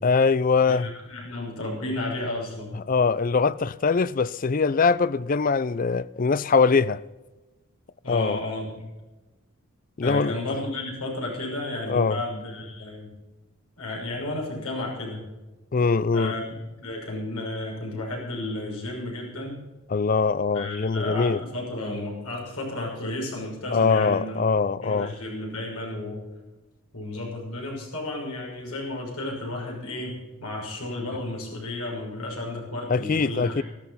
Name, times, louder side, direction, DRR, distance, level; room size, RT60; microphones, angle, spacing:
voice 1, 0.0-0.9 2.7-7.0 8.1-8.4 10.0-10.4 11.9-12.2 15.7-16.4 19.9-21.4 23.7-25.1 32.9-33.6, left 4 dB, 35° left, 0.4 m, -22 dB
voice 2, 0.7-2.8 8.0-8.8 10.0-13.1 13.8-15.2 16.1-16.4 16.8-19.6 20.5-24.4 24.8-26.2 26.9-30.2 30.4-33.6, left 2 dB, 80° left, 6.1 m, -32 dB
14.5 x 13.5 x 5.6 m
head